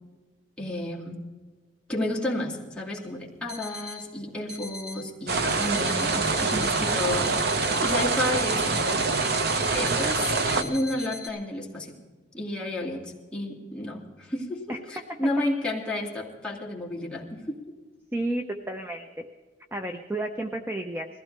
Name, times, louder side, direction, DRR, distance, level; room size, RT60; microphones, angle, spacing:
voice 1, 0.6-1.2 1.9-9.1 9.7-11.9 12.3-17.7, left 1 dB, 5° left, -3 dB, 2.4 m, -32 dB
sound 1, 3.0-3.1 3.5-4.0 4.5-5.0 5.5-11.3, left 3 dB, 35° right, 5.1 m, -40 dB
sound 2, 5.3-10.6, right 4 dB, 60° right, 1.0 m, -25 dB
voice 2, 18.1-19.2 19.7-21.1, right 1 dB, 15° right, 4 dB, 0.8 m, -31 dB
21.0 x 15.5 x 3.4 m, 1.3 s
head